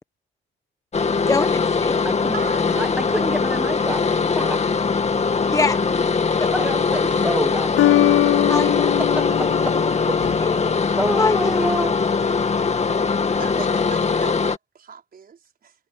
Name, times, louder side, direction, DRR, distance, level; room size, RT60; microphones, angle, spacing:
sound 1, 0.9-14.6, left 5 dB, 35° left, 2.1 m, -21 dB
voice 1, 1.3-2.0 5.5-5.8 8.5-9.0 9.4-10.0 10.4-11.7, left 3 dB, 15° left, 1.2 m, -25 dB
voice 2, 2.0-4.6 6.5-7.7 9.0-9.7 10.1-10.4 11.0-12.1, right 1 dB, 5° right, 1.4 m, -28 dB
sound 2, 6.6-7.1 7.8-10.7, left 15 dB, 90° left, 0.7 m, -22 dB
voice 3, 13.4-15.7, right 7 dB, 50° right, 5.4 m, -37 dB
cardioid pair, 90°, 20 cm